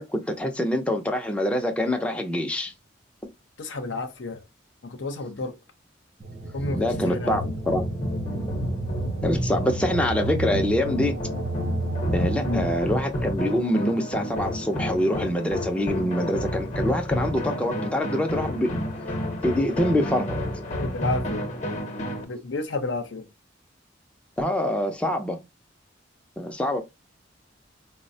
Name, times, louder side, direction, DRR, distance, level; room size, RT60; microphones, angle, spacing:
voice 1, 0.0-2.7 6.7-7.8 9.2-11.2 12.1-18.9 19.4-20.6 24.4-25.4 26.4-26.8, left 1 dB, 5° left, 0.4 m, -25 dB
voice 2, 3.6-4.4 4.8-5.5 6.5-7.4 12.4-12.7 20.8-21.5 22.3-23.3, left 2 dB, 85° left, 0.6 m, -31 dB
sound 1, 6.2-12.7, right 2 dB, 45° right, 0.6 m, -32 dB
sound 2, 6.6-22.3, equal, 40° left, 0.7 m, -30 dB
4.0 x 2.0 x 2.6 m
head